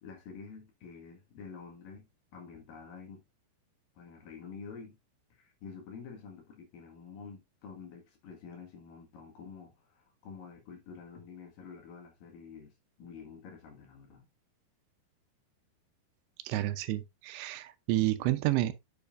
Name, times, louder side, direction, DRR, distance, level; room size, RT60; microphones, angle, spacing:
voice 1, 0.0-3.2 4.0-5.0 5.3-14.3, left 5 dB, 60° left, 3.1 m, -48 dB
voice 2, 16.5-18.7, right 15 dB, 85° right, 3.0 m, -30 dB
8.7 x 7.1 x 2.5 m
omnidirectional pair, 5.0 m